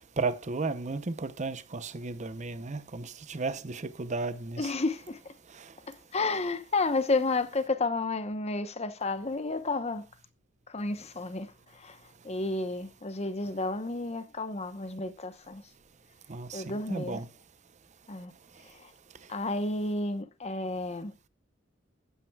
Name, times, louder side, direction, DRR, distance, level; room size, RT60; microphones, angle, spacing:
voice 1, 0.0-4.7 16.3-17.3, right 3 dB, 40° right, 0.7 m, -34 dB
voice 2, 4.6-5.3 5.9-10.0 10.7-12.0 12.2-15.6 16.5-17.2 18.1-18.3 18.7-18.9 19.3-21.1, left 3 dB, 35° left, 1.0 m, -31 dB
12.5 x 9.2 x 2.3 m
head